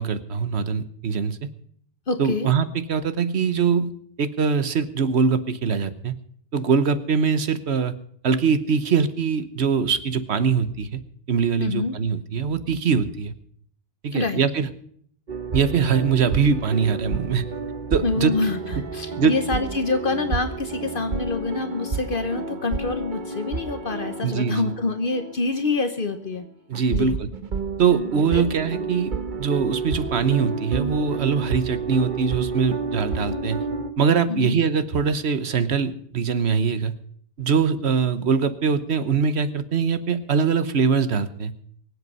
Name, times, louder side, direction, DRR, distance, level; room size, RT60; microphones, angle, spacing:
voice 1, 0.0-1.5 2.2-3.9 4.2-6.2 6.5-7.9 8.2-11.0 11.3-13.3 14.0-14.7 15.5-17.5 17.9-18.3 19.2-19.4 24.2-24.7 26.7-27.3 27.8-29.1 29.4-33.6 34.0-37.0 37.4-41.5, right 6 dB, 85° right, 12 dB, 1.3 m, -22 dB
voice 2, 2.1-2.5 11.6-12.0 14.1-14.4 18.0-26.5 26.9-27.2 28.3-28.5 34.3-34.6, left 3 dB, 55° left, 8 dB, 1.1 m, -26 dB
sound 1, 15.3-25.5 25.7-25.9 26.7-33.9, right 4 dB, 50° right, 1.1 m, -30 dB
24.0 x 8.1 x 5.5 m, 0.62 s
omnidirectional pair, 1.1 m